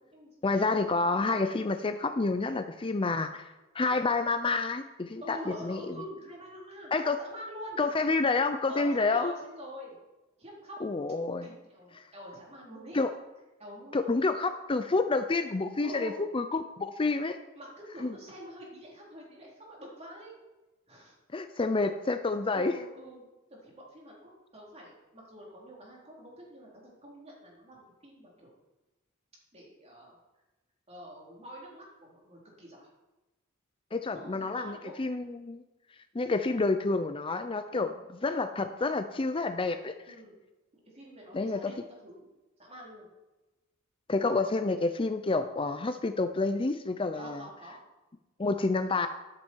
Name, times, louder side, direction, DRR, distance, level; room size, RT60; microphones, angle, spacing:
voice 1, 0.4-3.4 3.7-5.8 6.9-7.2 7.8-9.3 10.8-11.5 12.9-13.1 13.9-17.4 18.0-18.1 21.3-22.7 33.9-35.6 36.1-37.9 38.2-39.9 41.3-41.7 44.1-47.4 48.4-49.1, left 3 dB, 25° left, 9 dB, 0.5 m, -29 dB
voice 2, 5.2-7.8 8.7-10.0 10.4-11.0 11.4-13.0 13.6-14.3 15.8-16.2 17.6-20.4 20.9-21.5 22.5-23.2 23.5-28.5 29.5-30.2 30.9-32.9 34.1-34.9 37.7-38.0 40.1-40.4 40.7-42.3 42.6-43.1 47.2-47.8, equal, 30° right, -3 dB, 3.9 m, -46 dB
13.0 x 10.5 x 4.7 m, 1.1 s
head